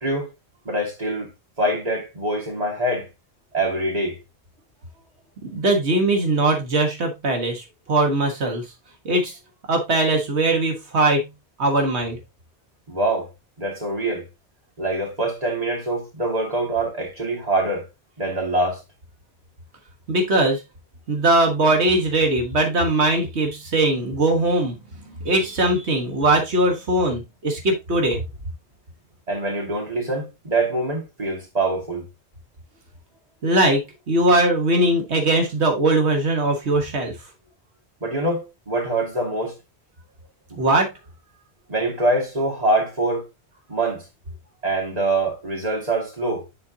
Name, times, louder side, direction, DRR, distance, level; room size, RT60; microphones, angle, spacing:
voice 1, 0.6-1.3 1.6-3.1 3.5-4.2 12.9-13.3 13.6-14.2 14.8-17.9 18.2-18.8 29.3-32.1 38.0-39.6 40.5-40.6 41.7-43.3 43.7-44.1 44.6-46.4, right 2 dB, 35° right, 2.4 m, -24 dB
voice 2, 5.5-7.6 7.9-8.6 9.0-9.3 9.7-11.2 11.6-12.2 20.1-20.6 21.1-24.7 25.2-28.2 33.4-33.8 34.1-37.1 40.6-40.9, right 2 dB, 85° right, 1.7 m, -20 dB
9.6 x 4.2 x 2.7 m
omnidirectional pair, 1.1 m